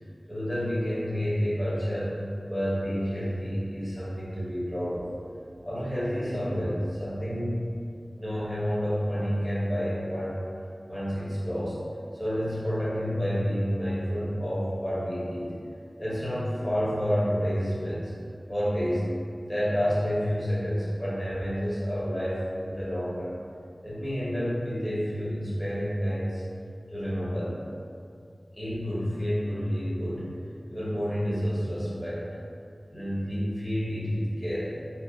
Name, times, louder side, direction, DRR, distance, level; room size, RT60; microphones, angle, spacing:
voice 1, 0.3-2.2 2.5-5.1 5.6-7.7 8.2-10.4 10.9-11.8 12.1-15.5 16.0-18.1 18.5-19.0 19.4-23.3 23.8-26.4 26.9-27.6 28.5-30.3 30.7-32.2 32.9-34.7, equal, 30° left, -10 dB, 1.0 m, -29 dB
2.6 x 2.5 x 2.3 m, 2.4 s
wide cardioid pair, 60°, 0 cm